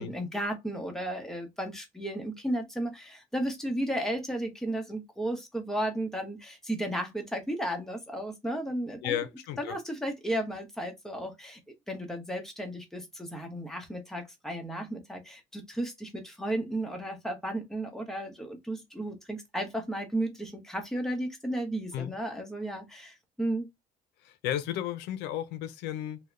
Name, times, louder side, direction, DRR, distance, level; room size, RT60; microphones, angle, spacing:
voice 1, 0.0-9.2 9.6-11.6 11.9-23.7, right 1 dB, 5° left, 0.8 m, -34 dB
voice 2, 9.0-9.8 21.9-22.1 24.2-26.2, left 11 dB, 85° left, 0.5 m, -33 dB
2.7 x 2.1 x 2.4 m
cardioid pair, 110°, 17 cm